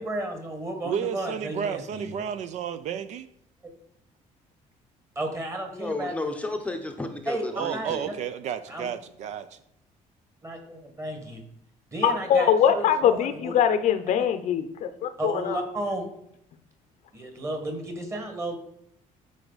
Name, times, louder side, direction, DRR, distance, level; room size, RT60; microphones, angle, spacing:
voice 1, 0.0-2.1 5.1-6.1 7.3-7.4 7.7-7.9 8.7-8.9 10.4-11.4 11.9-13.5 15.2-16.1 17.1-18.5, right 1 dB, 20° right, 1.6 m, -33 dB
voice 2, 0.8-3.3 7.5-9.6, right 8 dB, 55° right, 0.4 m, -32 dB
voice 3, 5.7-8.1, left 2 dB, 10° left, 0.7 m, -33 dB
voice 4, 12.0-15.6, left 8 dB, 60° left, 0.6 m, -23 dB
12.5 x 4.8 x 4.0 m
cardioid pair, 155°, 14 cm